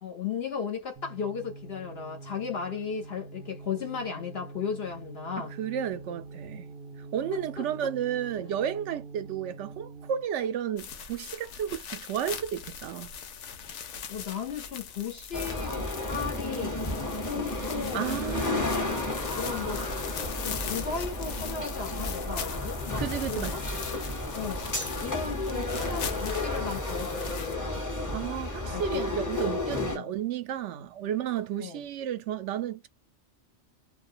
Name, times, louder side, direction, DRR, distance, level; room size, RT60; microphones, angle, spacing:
voice 1, 0.0-5.5 7.3-7.7 14.1-16.8 17.3-18.1 18.6-18.7 19.4-19.8 20.4-23.0 23.3-23.6 24.3-24.6 25.0-27.8 28.7-29.0 30.0-30.1 31.6-31.8, left 6 dB, 60° left, 1.0 m, -35 dB
sound 1, 1.0-10.3, right 3 dB, 65° right, 0.7 m, -45 dB
voice 2, 5.4-6.7 7.0-13.1 17.9-18.9 22.8-23.8 28.1-32.9, right 9 dB, 85° right, 0.9 m, -33 dB
sound 2, 10.8-27.6, left 7 dB, 85° left, 1.0 m, -40 dB
sound 3, 15.3-30.0, left 2 dB, 20° left, 0.8 m, -32 dB
2.4 x 2.3 x 2.5 m
omnidirectional pair, 1.2 m